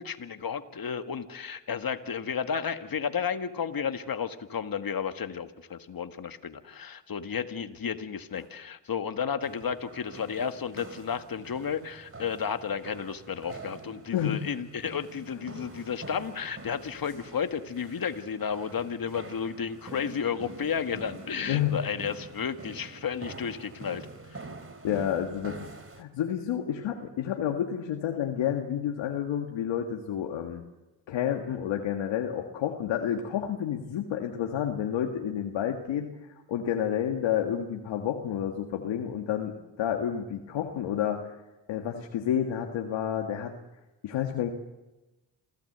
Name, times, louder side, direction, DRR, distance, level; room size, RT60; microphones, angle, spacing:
voice 1, 0.0-24.1 24.3-24.4, left 7 dB, 50° left, 8 dB, 1.8 m, -32 dB
sound 1, 9.4-26.0, right 2 dB, 30° right, 3.2 m, -46 dB
voice 2, 14.1-14.5 21.4-21.8 24.8-25.6 25.9-30.6 31.1-36.2 36.5-41.3 41.7-43.5 44.0-44.5, left 9 dB, 90° left, 3 dB, 1.8 m, -30 dB
27.5 x 16.5 x 8.0 m, 1.0 s
cardioid pair, 60°, 44 cm